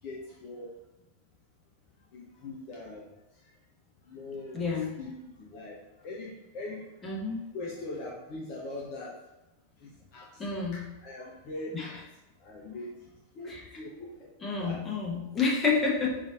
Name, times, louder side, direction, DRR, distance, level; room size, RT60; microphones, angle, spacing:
voice 1, 0.0-0.7 2.1-3.1 4.1-7.2 7.5-9.2 9.8-12.0 12.4-12.9 13.3-14.3 14.6-14.8, left 2 dB, 40° left, -3 dB, 0.6 m, -42 dB
voice 2, 4.5-4.9 7.0-7.4 10.4-10.8 11.7-11.9 13.5-13.6 14.4-16.2, left 4 dB, 20° left, -3 dB, 1.0 m, -29 dB
5.2 x 2.6 x 2.5 m, 0.97 s
figure-of-eight pair, 90°, 0 cm